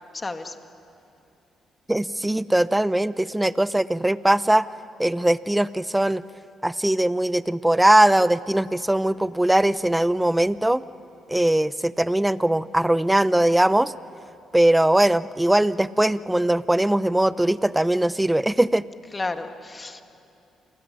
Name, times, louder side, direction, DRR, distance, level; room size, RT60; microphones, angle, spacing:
voice 1, 0.1-0.6 19.1-20.0, left 3 dB, 25° left, 7 dB, 1.9 m, -31 dB
voice 2, 1.9-4.7 5.0-6.2 6.6-10.8 11.3-13.9 14.5-18.8, right 1 dB, 10° right, 16 dB, 0.8 m, -20 dB
28.5 x 21.5 x 9.4 m, 2.7 s
supercardioid pair, 65°, 0 cm